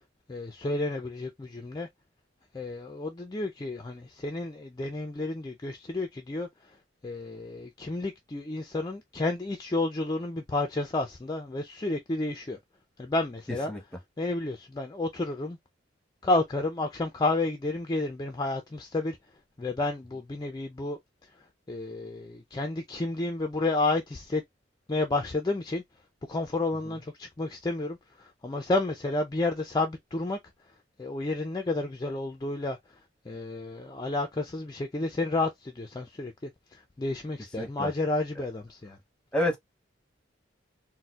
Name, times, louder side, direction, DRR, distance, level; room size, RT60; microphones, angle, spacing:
voice 1, 0.3-1.9 2.5-6.5 7.0-12.6 13.0-13.7 14.2-15.6 16.2-19.2 19.6-21.0 21.7-24.4 24.9-25.8 26.3-30.4 31.0-32.8 33.3-39.0, left 2 dB, 20° left, 0.4 m, -31 dB
voice 2, 37.6-37.9 39.3-39.6, left 1 dB, 5° left, 0.9 m, -28 dB
4.1 x 2.1 x 2.3 m
head